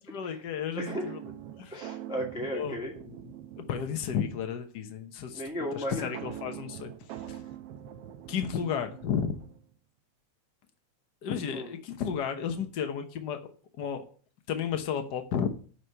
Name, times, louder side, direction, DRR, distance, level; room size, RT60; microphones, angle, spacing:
voice 1, 0.1-1.2 1.6-1.7 2.5-2.8 3.7-5.4 5.7-6.9 7.3-7.4 8.3-9.3 11.2-13.4 13.8-14.0 14.5-15.5, left 7 dB, 85° left, 7 dB, 0.9 m, -32 dB
voice 2, 0.8-1.1 1.7-2.9 5.3-6.1 11.5-11.7, equal, ahead, -2 dB, 1.7 m, -35 dB
sound 1, 0.9-4.6 6.1-9.7, right 11 dB, 75° right, 1.4 m, -44 dB
10.0 x 5.0 x 7.9 m, 0.42 s
omnidirectional pair, 3.4 m